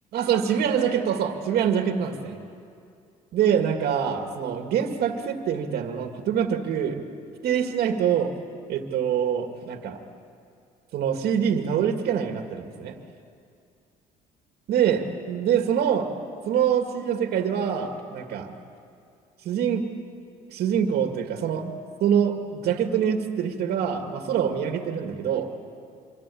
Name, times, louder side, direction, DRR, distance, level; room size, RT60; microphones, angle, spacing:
voice 1, 0.1-2.4 3.3-7.0 7.4-8.3 8.7-10.0 10.9-13.0 14.7-16.1 16.5-18.5 19.4-19.9 20.5-21.7 22.0-25.5, right 8 dB, 70° right, 5 dB, 2.1 m, -25 dB
26.0 x 24.5 x 8.6 m, 2.5 s
cardioid pair, 110°, 17 cm